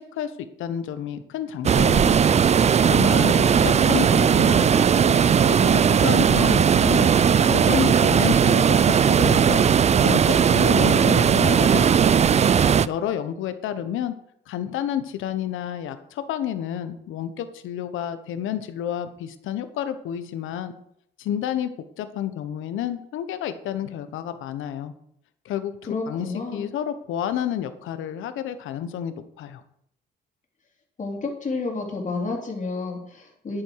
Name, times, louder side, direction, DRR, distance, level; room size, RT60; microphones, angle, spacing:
voice 1, 0.0-2.2 2.6-3.3 3.6-7.1 7.5-9.6 10.0-12.2 12.9-14.1 14.5-20.7 21.2-21.7 22.0-24.9 25.4-29.6, left 10 dB, 85° left, 10 dB, 1.1 m, -30 dB
sound 1, 1.6-12.9, right 7 dB, 35° right, 0.4 m, -18 dB
voice 2, 3.2-4.2 25.9-26.6 31.0-33.6, left 3 dB, 40° left, 0 dB, 3.5 m, -31 dB
10.5 x 8.9 x 4.7 m, 0.72 s
cardioid pair, 90°, 20 cm